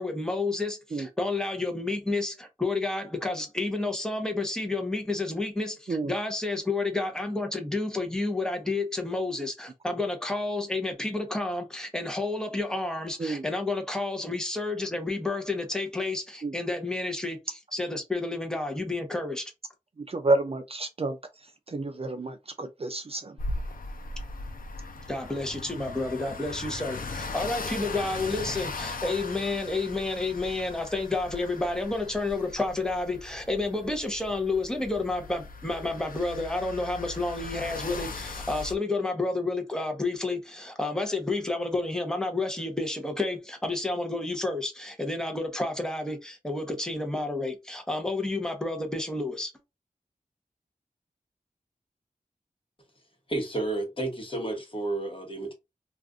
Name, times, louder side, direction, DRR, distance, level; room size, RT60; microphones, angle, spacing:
voice 1, 0.0-19.5 25.1-49.5, left 2 dB, 5° left, 0.8 m, -30 dB
voice 2, 20.1-21.2 21.7-23.4, right 2 dB, 40° right, 0.4 m, -29 dB
sound 1, 23.4-38.8, left 3 dB, 75° left, 0.6 m, -38 dB
voice 3, 53.3-55.5, right 2 dB, 35° left, 1.1 m, -31 dB
2.5 x 2.4 x 3.5 m
wide cardioid pair, 75°, 15 cm